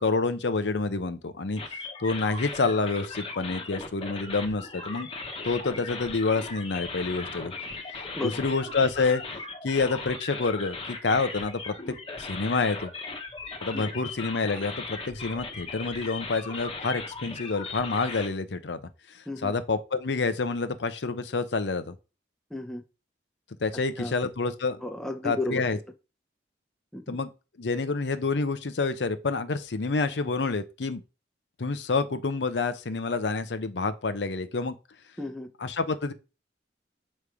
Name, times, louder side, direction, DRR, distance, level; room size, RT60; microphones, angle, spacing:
voice 1, 0.0-1.6 2.0-5.1 5.4-7.5 8.2-9.2 9.6-11.7 12.2-12.9 13.6-18.8 19.1-22.0 23.6-24.8 25.2-25.8 27.1-27.3 27.6-31.0 31.6-34.7 35.6-36.1, left 4 dB, 85° left, 0.7 m, -28 dB
sound 1, 1.6-18.3, left 3 dB, 30° left, 1.1 m, -38 dB
voice 2, 22.5-22.8 24.0-24.1 24.8-25.6 26.9-27.2 35.2-35.5, left 2 dB, 5° left, 0.6 m, -33 dB
6.8 x 3.2 x 4.9 m
head